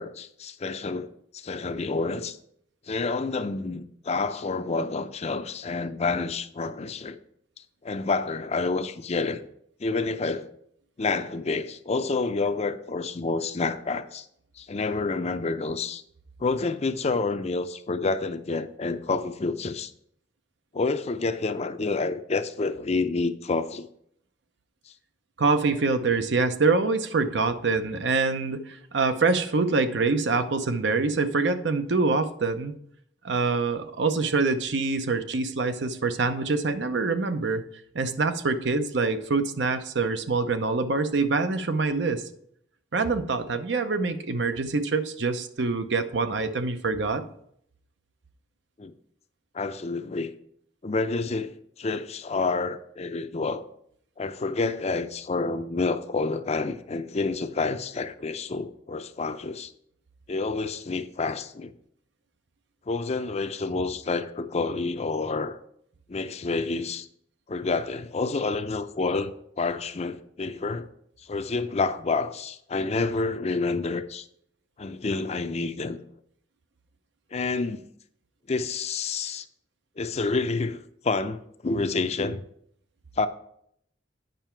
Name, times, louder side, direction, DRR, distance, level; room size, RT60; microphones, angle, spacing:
voice 1, 0.0-2.4 2.9-7.2 7.8-9.4 9.8-10.5 11.0-14.3 14.6-16.0 16.4-19.9 20.7-23.9 48.8-48.9 49.5-50.3 50.8-53.6 54.2-59.7 60.3-61.7 62.9-65.6 66.1-67.1 67.5-70.9 71.2-74.3 74.8-76.0 77.3-77.9 78.5-79.5 80.0-82.4 83.2-83.3, left 3 dB, 35° left, 0.5 m, -28 dB
voice 2, 25.4-32.7 33.2-37.6 37.9-42.2 42.9-47.2, right 3 dB, 70° right, 0.7 m, -25 dB
9.1 x 5.7 x 4.5 m
head